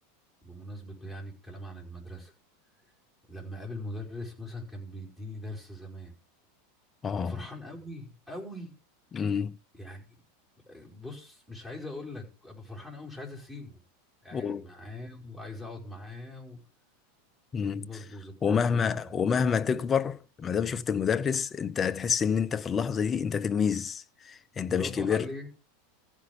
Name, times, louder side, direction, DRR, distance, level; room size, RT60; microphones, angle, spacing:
voice 1, 0.4-2.3 3.3-6.1 7.1-8.7 9.7-10.0 10.7-13.8 14.2-16.6 17.6-19.1 24.6-25.5, left 1 dB, ahead, 5.2 m, -41 dB
voice 2, 7.0-7.5 9.1-9.6 14.3-14.7 17.5-17.9 18.4-25.3, left 6 dB, 25° left, 0.7 m, -28 dB
14.5 x 5.3 x 7.0 m
hypercardioid pair, 90°, 0 cm